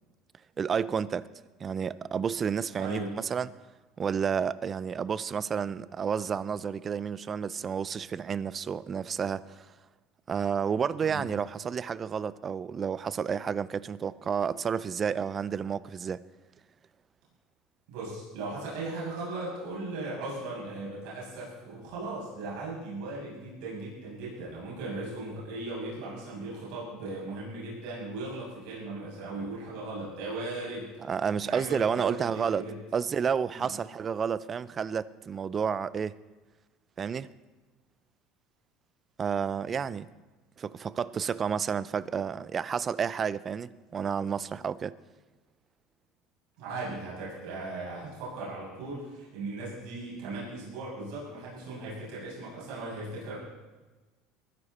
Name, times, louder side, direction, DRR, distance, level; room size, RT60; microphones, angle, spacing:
voice 1, 0.6-1.3 1.6-3.5 4.0-9.7 10.3-16.2 31.0-32.7 32.9-36.2 37.0-37.3 39.2-40.1 40.6-45.0, right 7 dB, 25° right, 0.5 m, -30 dB
voice 2, 2.8-3.2 11.0-11.3 17.9-30.9 31.4-32.8 33.5-33.7 46.6-53.4, right 2 dB, 70° right, 7.4 m, -38 dB
22.0 x 15.0 x 4.2 m
cardioid pair, 145°, 0 cm